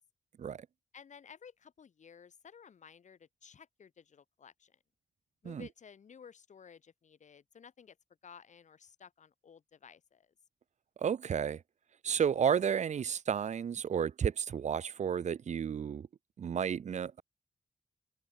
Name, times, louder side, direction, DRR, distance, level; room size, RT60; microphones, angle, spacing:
voice 1, 0.9-4.8 5.4-8.0 8.2-10.3, left 7 dB, 85° left, 6.0 m, -55 dB
voice 2, 11.0-11.6 12.0-16.1 16.4-17.2, right 7 dB, 75° right, 0.7 m, -32 dB
wide cardioid pair, 110°, 12 cm